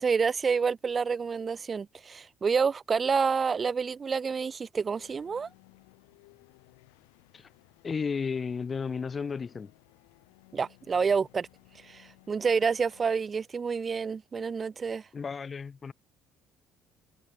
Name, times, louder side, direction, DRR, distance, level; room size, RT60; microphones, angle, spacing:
voice 1, 0.0-5.5 10.5-11.5 11.8-15.0, right 5 dB, 35° right, 0.4 m, -28 dB
sound 1, 5.0-13.2, left 30 dB, 85° left, 5.2 m, -60 dB
voice 2, 7.8-9.7 15.1-15.9, left 5 dB, 35° left, 0.4 m, -33 dB
supercardioid pair, 70°, 0 cm